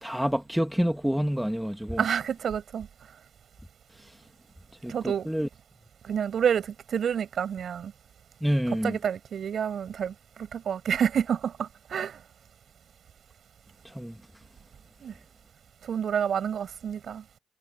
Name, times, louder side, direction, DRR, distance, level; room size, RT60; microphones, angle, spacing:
voice 1, 0.0-2.0 4.8-5.5 8.4-9.0 13.8-14.2, equal, ahead, 2.0 m, -28 dB
voice 2, 2.0-2.9 4.9-5.3 6.0-7.9 8.8-12.2 15.0-15.1 15.8-17.2, right 8 dB, 60° right, 6.3 m, -29 dB
cardioid pair, 90°, 0 cm